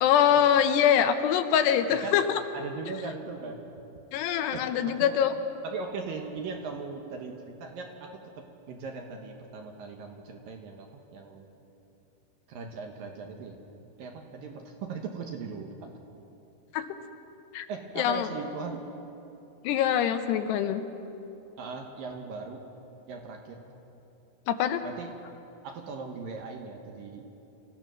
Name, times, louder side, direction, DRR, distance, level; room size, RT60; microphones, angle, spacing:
voice 1, 0.0-2.2 4.1-5.3 16.7-17.0 17.5-17.7 18.0-18.3 19.6-20.8 24.5-24.8, left 9 dB, 80° left, 8 dB, 2.8 m, -24 dB
voice 2, 2.5-3.6 4.5-5.1 5.6-11.5 12.5-13.5 14.0-15.9 17.7-18.8 21.6-22.6 23.1-23.6 24.8-25.1 25.6-27.2, right 4 dB, 65° right, 2 dB, 2.5 m, -39 dB
27.5 x 15.0 x 6.2 m, 2.9 s
omnidirectional pair, 5.0 m